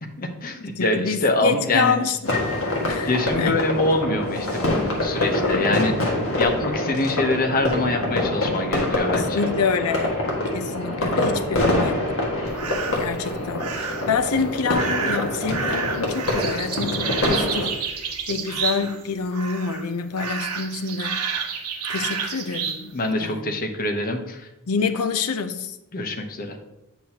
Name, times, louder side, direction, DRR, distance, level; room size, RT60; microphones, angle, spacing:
voice 1, 0.2-2.0 3.0-5.9 6.3-9.4 22.9-24.5 25.9-26.6, left 2 dB, 40° left, 0.8 m, -24 dB
voice 2, 0.8-2.4 2.9-3.6 9.1-10.2 10.5-12.1 12.9-21.3 21.9-23.5 24.7-25.8, left 5 dB, 80° left, 0.6 m, -27 dB
sound 1, 2.2-17.7, left 1 dB, 65° left, 1.6 m, -25 dB
Piano, 2.3-4.1, left 4 dB, 15° left, 2.1 m, -36 dB
sound 2, 12.5-13.1 13.6-14.2 14.7-19.1 19.3-19.8 20.2-22.8, right 6 dB, 85° right, 0.9 m, -29 dB
8.6 x 6.1 x 2.8 m
head